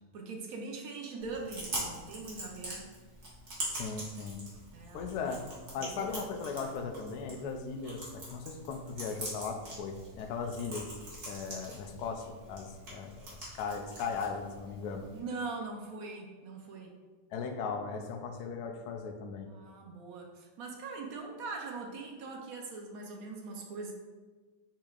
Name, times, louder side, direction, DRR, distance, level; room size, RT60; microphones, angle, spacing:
voice 1, 0.1-2.9 4.7-5.1 5.8-6.1 15.1-16.9 19.5-23.9, right 3 dB, 70° right, 1 dB, 0.9 m, -42 dB
Chewing mastication, 1.2-15.2, right 1 dB, 40° right, 1.4 m, -44 dB
voice 2, 3.6-4.4 4.9-5.4 5.7-10.9 11.3-15.1 17.3-19.5, left 5 dB, 70° left, 5 dB, 1.0 m, -38 dB
4.8 x 4.4 x 2.3 m, 1.3 s
omnidirectional pair, 2.0 m